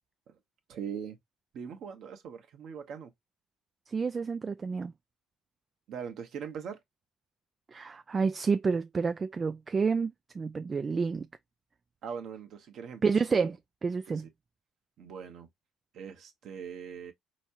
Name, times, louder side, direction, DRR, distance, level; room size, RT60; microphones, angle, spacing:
voice 1, 0.7-1.2 1.5-3.1 5.9-6.8 12.0-13.0 13.3-13.5 14.1-14.2 15.0-15.5 15.9-17.1, right 7 dB, 60° right, 1.1 m, -41 dB
voice 2, 3.9-4.9 7.7-11.3 13.0-13.6 13.8-14.3, right 5 dB, 35° right, 0.3 m, -29 dB
4.4 x 3.1 x 2.6 m
hypercardioid pair, 60°, 0 cm